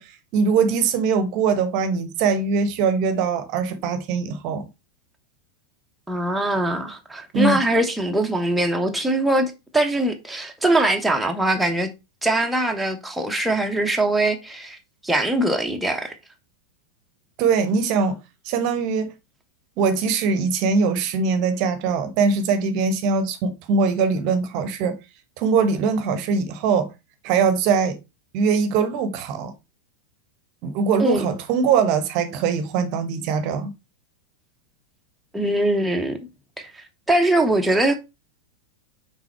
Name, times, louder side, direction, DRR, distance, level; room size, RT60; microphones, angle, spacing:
voice 1, 0.0-4.6 7.3-7.6 17.4-18.2 18.4-19.1 19.8-25.0 25.4-26.9 27.2-28.0 28.3-29.5 30.6-33.7, right 5 dB, 45° right, 0.9 m, -22 dB
voice 2, 6.1-11.9 12.2-14.8 15.0-16.1 31.0-31.2 35.3-36.2 36.6-38.0, right 1 dB, 5° right, 1.0 m, -22 dB
6.1 x 4.1 x 4.5 m
figure-of-eight pair, 90°, 0 cm